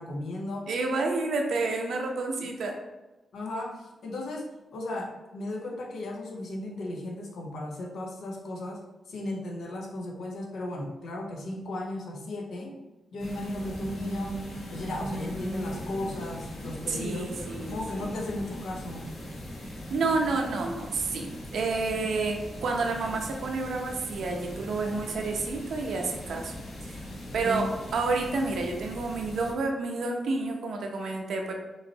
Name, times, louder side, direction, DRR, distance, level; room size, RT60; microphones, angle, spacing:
voice 1, 0.0-0.7 3.3-8.8 9.1-12.8 13.1-14.3 14.7-19.1 27.4-27.7, left 1 dB, 80° left, -1 dB, 0.9 m, -35 dB
voice 2, 0.7-2.8 16.9-18.1 19.6-21.3 21.5-27.0 27.3-31.5, right 3 dB, 80° right, 2 dB, 0.8 m, -30 dB
sound 1, 13.2-29.5, equal, 65° left, 1.3 m, -39 dB
5.7 x 3.1 x 2.9 m, 1.0 s
wide cardioid pair, 145°, 0 cm